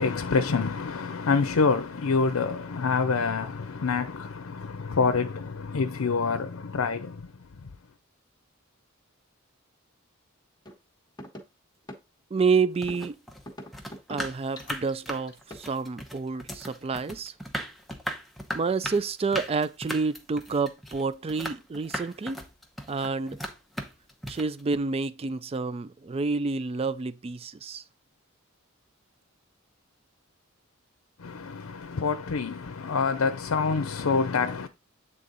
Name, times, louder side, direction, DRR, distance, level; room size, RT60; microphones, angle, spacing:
voice 1, 0.0-7.2 31.2-34.7, left 4 dB, 90° left, 0.6 m, -26 dB
sound 1, 10.7-10.8 11.2-11.4 11.9-12.0 12.9-13.1 13.5-14.2 14.6-15.7, equal, 20° left, 1.3 m, -41 dB
voice 2, 12.3-13.2 14.1-17.3 18.5-22.5 22.9-23.4 24.3-27.8, right 4 dB, 30° right, 0.3 m, -29 dB
sound 2, 12.7-24.8, equal, ahead, 0.8 m, -37 dB
8.4 x 3.7 x 3.9 m
head